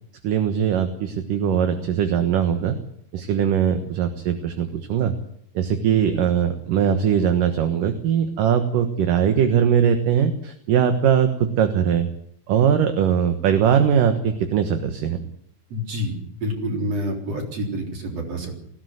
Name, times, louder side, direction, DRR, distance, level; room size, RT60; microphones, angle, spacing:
voice 1, 0.2-2.8 3.1-5.1 5.5-12.1 12.5-15.2, right 8 dB, 70° right, 7 dB, 2.9 m, -20 dB
voice 2, 15.7-16.1 16.4-18.5, equal, 45° right, 2 dB, 4.8 m, -27 dB
19.0 x 16.0 x 9.4 m, 0.70 s
omnidirectional pair, 4.1 m